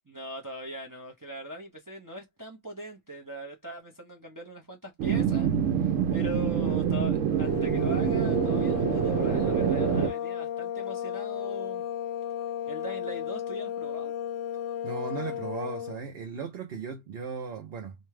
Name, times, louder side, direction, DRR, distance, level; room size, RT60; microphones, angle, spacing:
voice 1, 0.1-5.5 5.8-11.9 12.7-14.1, equal, 25° right, 0.5 m, -40 dB
sound 1, 5.0-10.1, right 8 dB, 80° right, 1.0 m, -26 dB
sound 2, 7.3-16.0, left 10 dB, 75° left, 0.9 m, -34 dB
voice 2, 14.8-18.0, right 5 dB, 60° right, 0.8 m, -37 dB
2.6 x 2.3 x 3.1 m
omnidirectional pair, 1.3 m